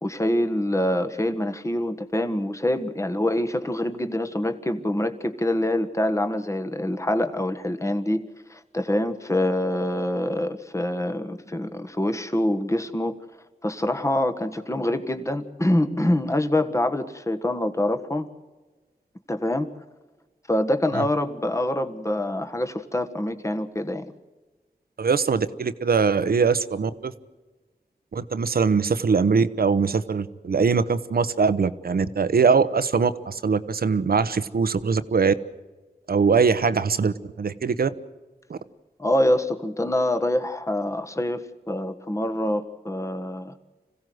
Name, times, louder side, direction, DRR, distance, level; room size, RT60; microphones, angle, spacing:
voice 1, 0.0-8.2 8.5-13.1 13.6-18.3 19.3-19.7 20.5-24.1 39.0-43.5, left 1 dB, 20° left, 8 dB, 1.5 m, -25 dB
voice 2, 25.0-27.1 28.1-35.3 36.1-37.9 38.5-38.6, right 5 dB, 75° right, 14 dB, 1.0 m, -22 dB
26.0 x 16.5 x 7.8 m, 1.3 s
wide cardioid pair, 85°, 16 cm